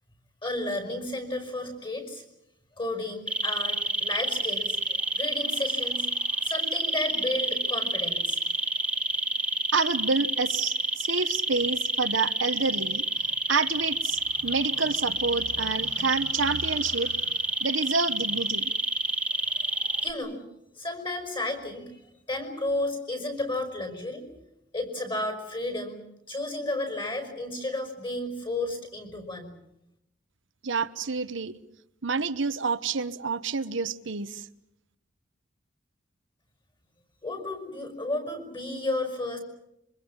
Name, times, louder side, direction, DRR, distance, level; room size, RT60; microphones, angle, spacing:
voice 1, 0.4-2.2 2.8-6.1 6.4-8.4 20.0-20.4 20.8-22.0 22.3-24.3 24.7-26.0 26.3-29.5 37.2-39.4, left 2 dB, 25° left, 5.6 m, -32 dB
sound 1, 3.3-20.1, right 1 dB, 5° right, 1.7 m, -28 dB
voice 2, 9.7-13.0 13.5-17.3 17.6-18.7 30.6-31.6 32.0-34.5, right 4 dB, 80° right, 1.0 m, -28 dB
26.5 x 24.5 x 7.3 m
head